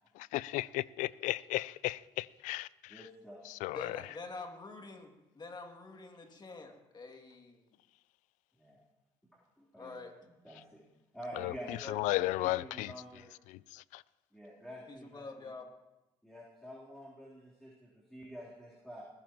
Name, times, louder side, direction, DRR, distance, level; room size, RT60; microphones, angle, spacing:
voice 1, 0.2-2.9 3.5-4.0 11.4-12.9 13.5-14.0, left 18 dB, 75° left, 0.4 m, -35 dB
voice 2, 2.9-3.4 4.0-4.1 8.6-8.8 9.3-9.9 10.2-10.8 11.1-11.8 12.1-13.3 14.3-15.5 16.2-19.0, equal, 5° left, 3.6 m, -48 dB
voice 3, 3.7-7.6 9.8-10.1 11.8-12.0 14.9-15.7, left 3 dB, 35° left, 2.5 m, -46 dB
21.0 x 14.5 x 3.1 m
supercardioid pair, 65°, 13 cm